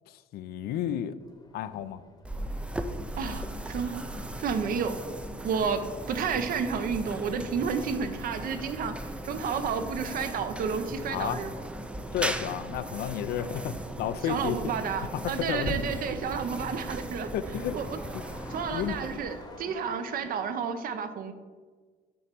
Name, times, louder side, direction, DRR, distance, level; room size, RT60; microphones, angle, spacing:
voice 1, 0.1-1.2 1.5-2.0 11.1-11.4 12.1-14.6 15.1-15.8 17.3-17.7 18.1-18.2 18.7-19.0, left 10 dB, 65° left, 13 dB, 0.4 m, -32 dB
Crowd, 1.2-20.6, left 2 dB, 25° left, 1.0 m, -51 dB
sound 1, 2.2-19.6, right 1 dB, 5° right, 0.4 m, -37 dB
voice 2, 3.2-4.0 4.4-5.1 5.4-11.5 14.3-17.3 17.7-18.0 18.5-21.3, right 6 dB, 60° right, 9 dB, 0.6 m, -31 dB
6.9 x 3.1 x 5.2 m, 1.4 s
cardioid pair, 110°, 17 cm